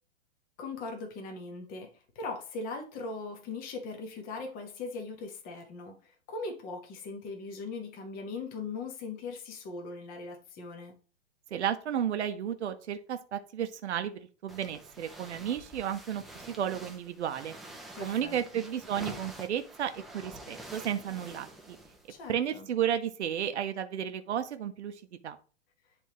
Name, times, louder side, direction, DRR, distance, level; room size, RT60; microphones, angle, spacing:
voice 1, 0.6-10.9 18.0-18.7 22.1-22.7, left 3 dB, 25° left, 3 dB, 1.2 m, -40 dB
voice 2, 11.5-16.2 16.6-17.6 18.0-21.8 22.3-25.4, right 9 dB, 85° right, 8 dB, 0.8 m, -33 dB
sound 1, 14.5-22.3, right 1 dB, ahead, 0.6 m, -47 dB
10.0 x 3.5 x 3.0 m, 0.37 s
hypercardioid pair, 135°, 33 cm